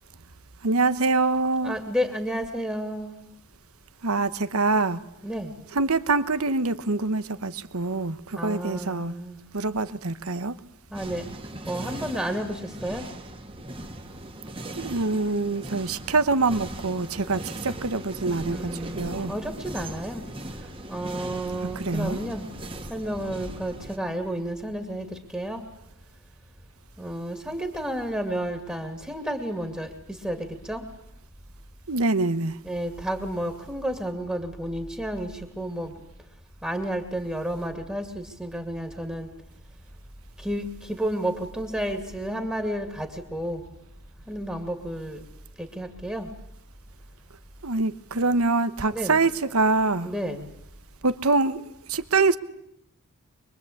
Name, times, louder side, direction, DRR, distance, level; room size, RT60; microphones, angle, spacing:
voice 1, 0.6-1.8 4.0-5.0 5.7-9.2 9.5-10.6 14.7-19.3 21.7-22.2 31.9-32.6 47.6-50.1 51.0-51.6 51.9-52.4, right 3 dB, 90° right, 1.2 m, -25 dB
voice 2, 1.6-3.2 5.2-5.5 8.3-9.4 10.9-11.2 11.7-13.0 18.5-20.2 20.9-22.5 22.9-25.1 25.3-25.6 27.0-29.9 30.2-30.4 30.7-30.8 32.6-35.3 35.6-35.9 36.6-39.3 40.4-43.6 44.3-45.2 45.6-46.3 48.9-49.2 50.0-50.5, right 1 dB, 5° right, 2.3 m, -31 dB
sound 1, 10.9-24.0, right 1 dB, 25° right, 1.8 m, -38 dB
24.0 x 23.0 x 8.6 m
head